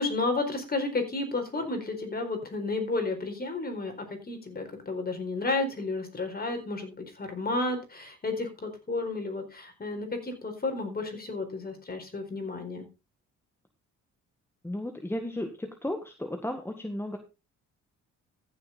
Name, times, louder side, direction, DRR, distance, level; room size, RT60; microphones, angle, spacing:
voice 1, 0.0-12.9, left 3 dB, 30° left, 6 dB, 4.3 m, -32 dB
voice 2, 14.6-17.2, left 1 dB, 10° left, 5 dB, 1.7 m, -34 dB
14.5 x 7.1 x 4.0 m, 0.28 s
cardioid pair, 90°, 30 cm